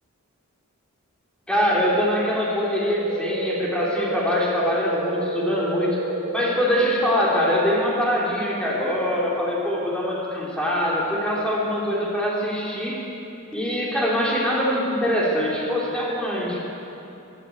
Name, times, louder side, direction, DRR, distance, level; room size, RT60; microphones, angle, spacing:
voice 1, 1.5-6.0 6.3-13.0 13.5-16.6, equal, 5° left, -5 dB, 2.8 m, -23 dB
sound 1, 2.9-7.9, right 2 dB, 65° right, 1.5 m, -29 dB
13.0 x 12.0 x 8.4 m, 2.8 s
head